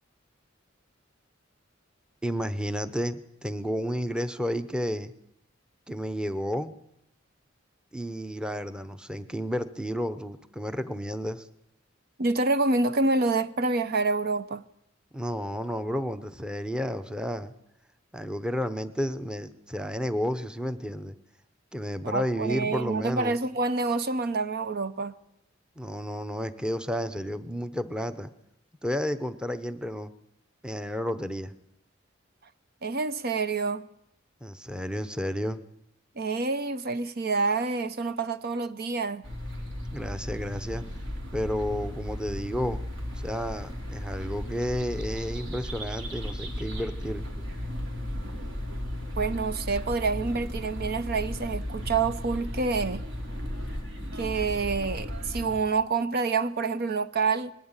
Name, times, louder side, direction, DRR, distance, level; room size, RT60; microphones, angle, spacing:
voice 1, 2.2-5.1 5.9-6.7 7.9-11.5 15.1-17.5 18.1-21.2 21.7-23.3 25.8-28.3 28.8-30.1 30.6-31.5 34.4-35.6 39.9-40.8 41.3-42.8 43.2-47.2, equal, 5° right, 0.8 m, -31 dB
voice 2, 12.2-14.6 22.0-25.1 32.8-33.9 36.2-39.2 49.2-53.0 54.1-57.5, right 3 dB, 50° right, 0.7 m, -27 dB
sound 1, 39.2-55.5, equal, 70° right, 3.6 m, -35 dB
20.5 x 15.0 x 8.9 m
head